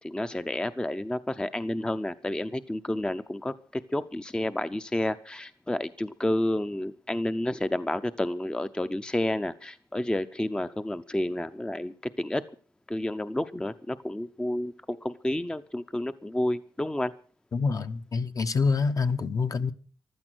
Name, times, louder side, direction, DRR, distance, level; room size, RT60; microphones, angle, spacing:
voice 1, 0.0-12.4 12.9-17.1, left 1 dB, 10° left, 0.6 m, -30 dB
voice 2, 17.5-19.7, left 4 dB, 45° left, 1.0 m, -26 dB
15.0 x 12.5 x 6.1 m
wide cardioid pair, 105°, 8 cm